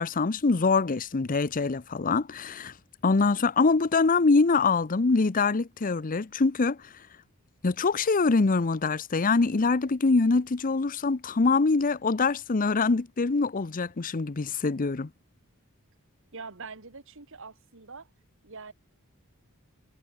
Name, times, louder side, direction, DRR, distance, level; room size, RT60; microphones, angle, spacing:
voice 1, 0.0-2.7 3.0-6.8 7.6-15.1, left 4 dB, 40° left, 0.7 m, -24 dB
voice 2, 16.3-18.1 18.4-18.7, right 4 dB, 65° right, 2.1 m, -43 dB
head